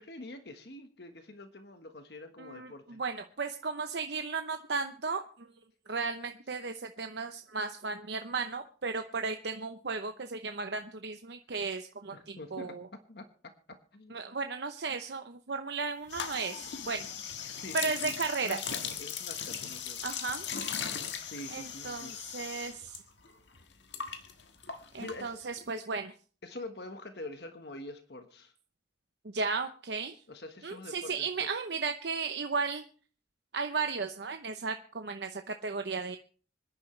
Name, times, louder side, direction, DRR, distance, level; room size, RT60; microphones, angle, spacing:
voice 1, 0.0-3.0 12.1-12.8 13.1-13.5 13.9-14.2 16.6-16.8 17.5-20.1 21.1-22.2 23.6-23.8 24.7-25.4 26.4-28.5 30.3-31.5, left 2 dB, 60° left, 7 dB, 1.3 m, -46 dB
voice 2, 2.4-5.5 5.9-12.9 14.1-17.1 17.7-18.6 20.0-20.5 21.5-23.0 24.9-26.1 29.3-30.2 30.6-32.8 33.5-36.2, right 4 dB, 70° right, 6 dB, 0.8 m, -35 dB
sound 1, 16.1-23.0 23.2-25.6, left 7 dB, 80° left, 1.5 m, -38 dB
26.0 x 10.5 x 3.2 m, 0.42 s
head